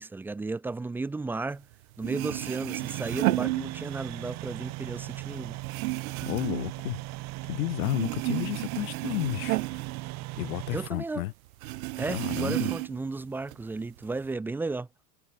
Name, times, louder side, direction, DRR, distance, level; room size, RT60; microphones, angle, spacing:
voice 1, 0.0-1.7 2.0-5.6 10.7-11.2 12.0-14.9, right 3 dB, 5° right, 0.6 m, -34 dB
sound 1, 1.7-1.8 2.0-4.2 4.6-7.5 7.8-10.8 11.1-11.2 11.6-13.1 13.5-14.2, right 20 dB, 80° right, 0.6 m, -32 dB
sound 2, 2.8-10.9, right 21 dB, 40° right, 2.0 m, -38 dB
voice 2, 6.3-7.0 7.5-9.6 10.4-11.3 12.1-12.7, left 19 dB, 80° left, 0.7 m, -32 dB
supercardioid pair, 150°, 42 cm